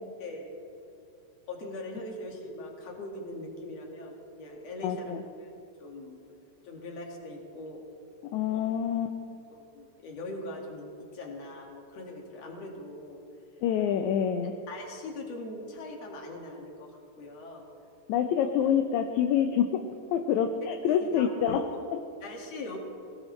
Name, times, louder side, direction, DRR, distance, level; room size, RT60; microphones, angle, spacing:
voice 1, 0.2-0.5 1.5-5.5 5.8-6.2 6.6-7.9 8.5-8.6 9.5-13.2 13.9-14.1 14.4-17.7 20.9-21.5 22.2-22.8, left 1 dB, 55° left, 0 dB, 3.0 m, -41 dB
voice 2, 4.8-5.2 8.3-9.1 13.6-14.5 18.1-19.8 20.1-22.0, left 8 dB, 75° left, 5 dB, 2.0 m, -27 dB
20.5 x 18.5 x 3.2 m, 2.5 s
omnidirectional pair, 3.6 m